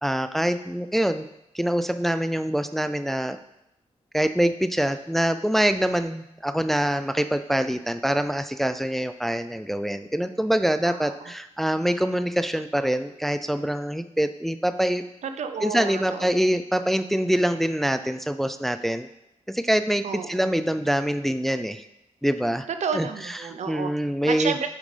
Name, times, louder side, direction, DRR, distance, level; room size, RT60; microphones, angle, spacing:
voice 1, 0.0-1.3 1.5-3.4 4.1-15.0 15.6-19.1 19.5-21.9 22.2-22.7 22.9-23.1 23.4-24.5, equal, ahead, 10 dB, 0.4 m, -25 dB
voice 2, 10.8-11.3 15.2-16.4 20.0-20.5 22.7-23.9 24.3-24.7, right 6 dB, 75° right, 8 dB, 0.6 m, -31 dB
8.7 x 5.2 x 3.3 m, 0.83 s
cardioid pair, 65°, 12 cm